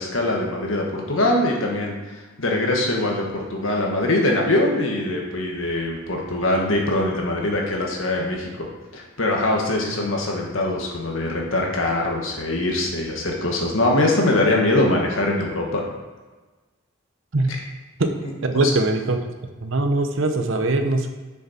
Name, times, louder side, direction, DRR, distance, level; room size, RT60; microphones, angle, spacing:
voice 1, 0.0-8.7 8.9-15.8 18.2-18.7, left 1 dB, 75° left, 0 dB, 1.6 m, -23 dB
voice 2, 18.4-19.2 19.6-21.1, right 2 dB, 70° right, 6 dB, 0.8 m, -21 dB
6.8 x 6.4 x 4.3 m, 1.2 s
head